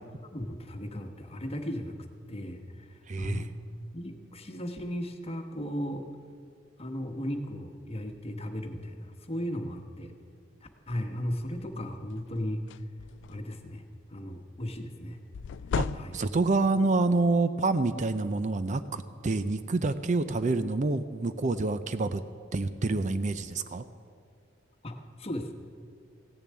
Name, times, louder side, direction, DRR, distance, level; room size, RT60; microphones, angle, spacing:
voice 1, 0.3-3.5 3.9-6.0 6.8-10.1 10.9-12.6 13.3-13.8 14.1-15.2 15.9-16.1 24.8-25.5, equal, 30° left, 5 dB, 1.2 m, -36 dB
voice 2, 3.1-3.5 15.7-22.2 22.5-23.8, right 3 dB, 40° right, 11 dB, 0.5 m, -27 dB
sound 1, 11.4-11.7 12.1-12.3 12.6-13.7 15.3-16.6, left 6 dB, 65° left, 0.3 m, -35 dB
15.5 x 7.1 x 9.5 m, 2.2 s
head